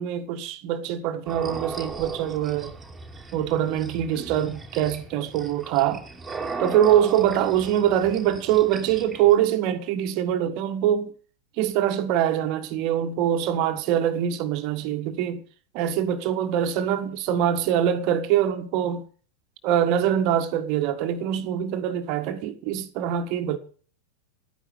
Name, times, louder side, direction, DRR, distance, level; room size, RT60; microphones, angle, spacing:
voice 1, 0.0-2.7 3.3-6.0 6.6-11.1 11.6-15.4 15.7-19.0 19.6-23.6, right 10 dB, 45° right, 1.6 m, -24 dB
sound 1, 1.2-9.3, right 4 dB, 10° right, 2.4 m, -37 dB
12.5 x 10.0 x 6.9 m
figure-of-eight pair, 90°, 0 cm